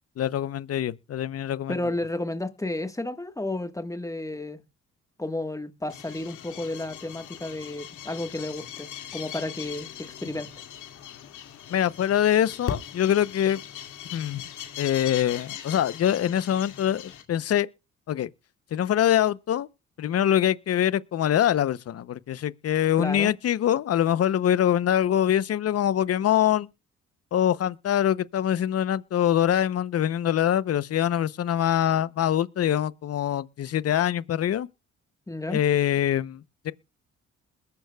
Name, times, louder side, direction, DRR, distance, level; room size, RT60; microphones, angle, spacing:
voice 1, 0.2-1.7 11.7-13.6 14.1-14.4 14.8-17.7 18.1-18.3 18.7-19.7 20.0-26.7 27.3-34.7 35.5-36.7, left 10 dB, 55° left, 0.7 m, -24 dB
voice 2, 1.7-4.6 5.2-10.5 23.0-23.3 35.3-35.6, left 2 dB, 10° left, 1.4 m, -32 dB
sound 1, 5.9-17.2, left 9 dB, 80° left, 2.3 m, -40 dB
21.5 x 11.5 x 2.3 m
cardioid pair, 90°, 30 cm